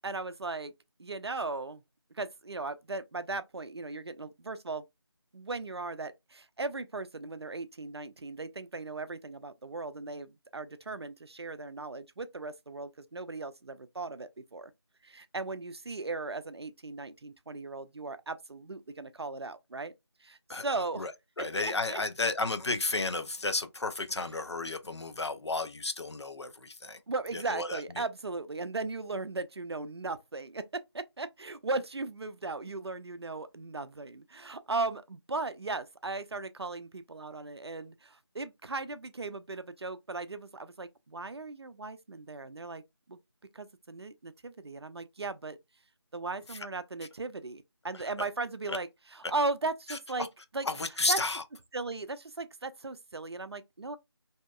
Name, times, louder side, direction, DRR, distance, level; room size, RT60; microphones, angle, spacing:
voice 1, 0.0-0.7 1.0-1.8 2.2-4.8 5.3-14.7 15.0-19.9 20.2-21.1 21.6-22.0 27.1-42.8 43.1-43.2 43.5-45.6 46.1-50.3 50.5-50.7 51.1-51.2 51.7-54.0, right 3 dB, 65° right, 0.4 m, -37 dB
voice 2, 20.5-21.1 21.4-27.0 27.3-28.0 46.5-46.7 48.7-48.8 49.9-50.3 50.6-51.4, left 3 dB, 75° left, 0.5 m, -33 dB
2.7 x 2.1 x 2.2 m
figure-of-eight pair, 165°, 14 cm